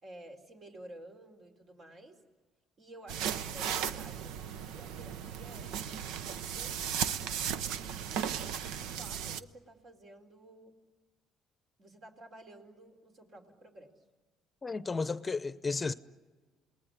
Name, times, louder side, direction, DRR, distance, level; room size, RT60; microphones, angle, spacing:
voice 1, 0.0-2.2 2.8-6.8 8.6-10.7 11.8-13.9, right 1 dB, 55° right, 4.3 m, -53 dB
sound 1, 3.1-9.4, right 8 dB, 80° right, 0.7 m, -36 dB
voice 2, 14.6-15.9, left 4 dB, 25° left, 0.8 m, -33 dB
28.5 x 19.5 x 9.7 m
supercardioid pair, 80°, 0 cm